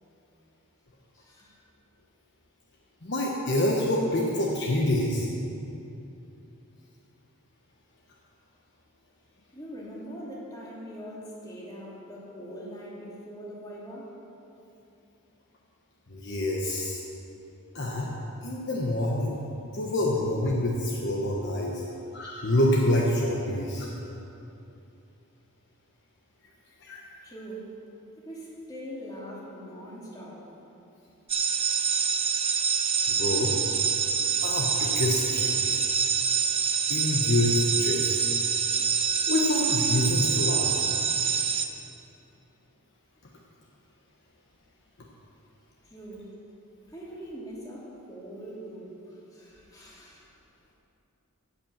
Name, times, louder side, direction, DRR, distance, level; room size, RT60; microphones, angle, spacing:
voice 1, 1.1-1.6 9.5-14.2 27.2-27.7 28.2-30.5 45.8-46.3 46.9-50.3, equal, 15° left, -6 dB, 2.5 m, -42 dB
voice 2, 3.0-5.3 16.1-17.0 17.7-18.1 18.4-19.4 19.7-21.8 22.1-23.9 26.8-27.0 33.1-33.5 34.4-35.6 36.9-38.3 39.3-40.7, left 1 dB, 55° left, -2 dB, 1.1 m, -26 dB
sound 1, 31.3-41.7, right 6 dB, 25° right, 0.6 m, -26 dB
16.0 x 5.8 x 7.3 m, 2.8 s
head